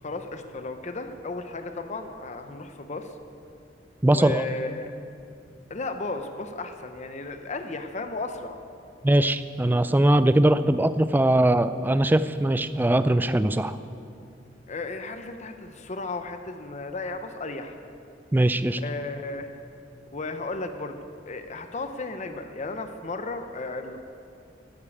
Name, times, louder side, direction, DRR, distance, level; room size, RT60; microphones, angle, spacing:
voice 1, 0.0-3.1 4.1-4.9 5.7-8.6 14.7-17.8 18.8-19.5 20.1-21.0 21.3-24.0, left 3 dB, 40° left, 7 dB, 0.7 m, -34 dB
voice 2, 4.0-4.5 9.0-13.8 18.3-18.8, right 1 dB, 10° right, 13 dB, 0.3 m, -21 dB
12.0 x 8.5 x 8.4 m, 2.5 s
head